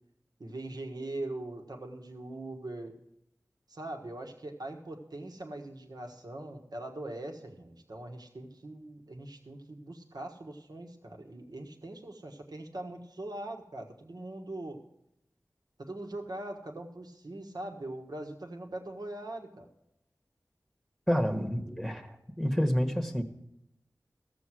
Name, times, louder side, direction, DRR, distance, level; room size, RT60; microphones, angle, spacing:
voice 1, 0.4-2.9 3.7-14.8 15.8-19.7, right 1 dB, 75° right, 3 dB, 1.5 m, -41 dB
voice 2, 21.1-23.2, equal, ahead, 6 dB, 1.2 m, -29 dB
14.5 x 7.1 x 6.2 m, 0.84 s
wide cardioid pair, 50°, 7 cm